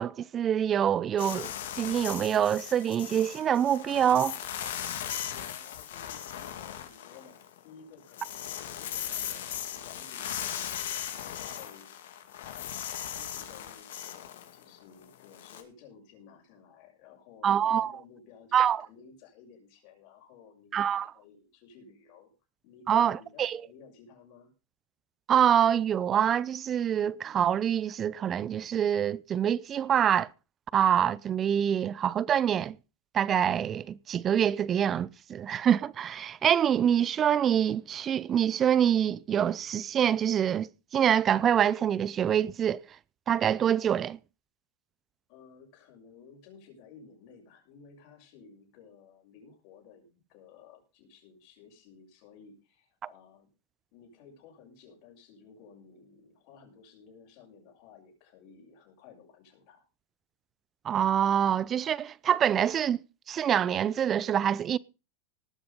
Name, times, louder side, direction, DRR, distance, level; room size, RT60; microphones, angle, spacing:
voice 1, 0.0-1.5 1.8-4.4 17.4-17.9 18.5-18.9 20.7-21.1 22.9-23.6 25.3-30.3 30.7-32.8 33.1-42.8 43.3-44.2 60.8-63.0 63.3-64.8, right 9 dB, 30° right, 0.6 m, -25 dB
sound 1, 1.2-7.6 7.9-15.6, left 10 dB, 85° left, 2.2 m, -38 dB
voice 2, 5.2-11.1 11.4-11.9 12.2-22.3 22.6-24.5 45.3-53.5 53.9-59.8, left 6 dB, 60° left, 6.8 m, -55 dB
18.5 x 6.9 x 5.3 m
supercardioid pair, 125°, 0 cm